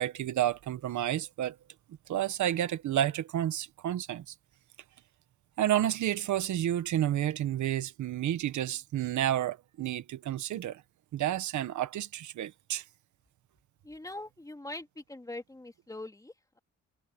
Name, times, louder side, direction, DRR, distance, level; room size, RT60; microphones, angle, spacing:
voice 1, 0.0-1.6 2.1-4.3 5.6-10.8 11.1-12.8, right 12 dB, 70° right, 1.4 m, -30 dB
voice 2, 13.8-16.6, left 2 dB, 10° left, 3.1 m, -43 dB
cardioid pair, 90°, 30 cm